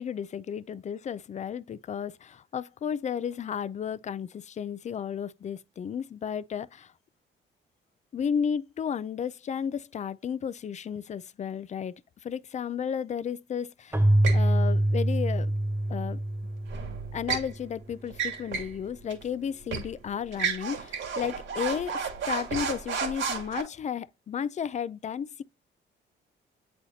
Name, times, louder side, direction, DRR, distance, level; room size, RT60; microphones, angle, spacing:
voice 1, 0.0-6.9 8.1-11.9 12.2-14.0 14.3-15.5 15.9-16.2 17.1-25.4, left 7 dB, 35° left, 0.4 m, -33 dB
Keyboard (musical), 13.9-17.5, right 1 dB, 10° right, 0.6 m, -25 dB
sound 1, 14.2-14.5 16.7-17.5 18.1-18.8 19.1-19.2 19.7-19.9 20.3-23.6, right 6 dB, 80° right, 2.3 m, -32 dB
8.2 x 4.2 x 2.8 m
cardioid pair, 90°, 20 cm